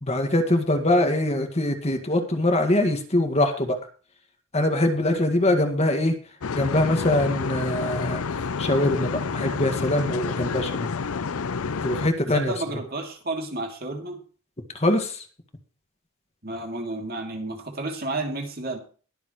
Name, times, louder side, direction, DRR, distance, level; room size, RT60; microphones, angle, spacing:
voice 1, 0.0-3.8 4.5-6.2 6.5-8.2 8.6-10.9 11.8-12.5 14.7-15.2, left 1 dB, 30° left, 5 dB, 1.9 m, -23 dB
sound 1, 6.4-12.1, left 5 dB, 80° left, 0.6 m, -29 dB
voice 2, 12.3-14.2 16.4-18.8, right 2 dB, 45° right, 3 dB, 2.9 m, -31 dB
21.5 x 7.3 x 3.2 m, 0.38 s
head